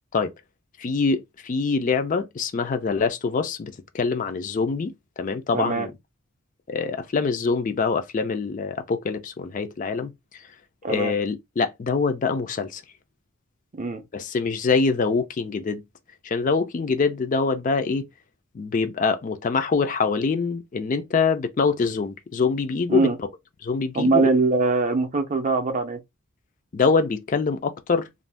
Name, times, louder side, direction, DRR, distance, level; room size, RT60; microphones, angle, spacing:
voice 1, 0.8-4.9 5.2-5.9 6.7-10.4 10.9-12.8 14.1-15.8 16.2-18.0 18.5-23.3 23.6-24.3 26.7-28.1, left 4 dB, 35° left, 0.3 m, -24 dB
voice 2, 5.5-5.9 10.8-11.1 13.8-14.0 22.9-23.2 23.9-26.0, right 3 dB, 35° right, 0.4 m, -22 dB
2.5 x 2.2 x 3.3 m
head